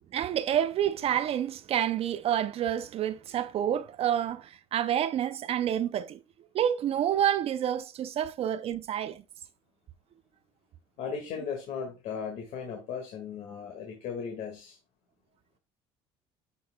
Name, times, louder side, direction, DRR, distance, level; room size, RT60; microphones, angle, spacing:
voice 1, 0.1-6.2 6.5-9.2, right 10 dB, 50° right, 0.5 m, -28 dB
voice 2, 11.0-14.8, left 6 dB, 70° left, 1.9 m, -37 dB
10.5 x 6.3 x 2.2 m
supercardioid pair, 95°, 13 cm